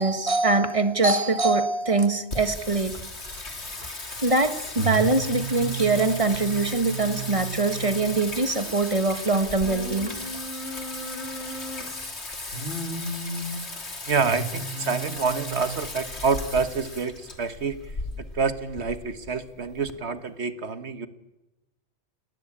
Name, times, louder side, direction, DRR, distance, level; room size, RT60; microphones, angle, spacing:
voice 1, 0.0-2.9 4.2-10.1, right 3 dB, 30° right, 9 dB, 1.7 m, -23 dB
Singing, 2.3-19.9, equal, 65° left, 3.3 m, -34 dB
voice 2, 14.1-21.1, right 5 dB, 65° right, 11 dB, 1.7 m, -27 dB
29.0 x 19.5 x 8.8 m, 1.0 s
omnidirectional pair, 1.2 m